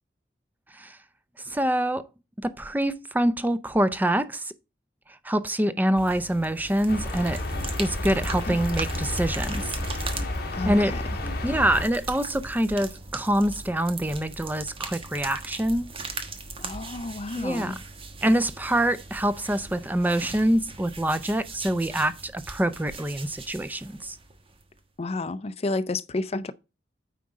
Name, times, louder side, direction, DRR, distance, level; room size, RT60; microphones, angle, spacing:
voice 1, 1.5-2.1 2.4-4.5 5.2-7.4 7.8-9.8 10.6-10.9 11.4-15.9 17.3-17.7 18.2-24.2, right 1 dB, 10° right, 0.6 m, -25 dB
sound 1, 6.0-24.9, right 3 dB, 30° right, 1.2 m, -40 dB
sound 2, 6.9-11.9, left 1 dB, 55° left, 1.6 m, -31 dB
voice 2, 10.5-11.0 16.6-17.8 25.0-26.5, left 2 dB, 35° left, 0.5 m, -31 dB
9.3 x 3.8 x 4.8 m
head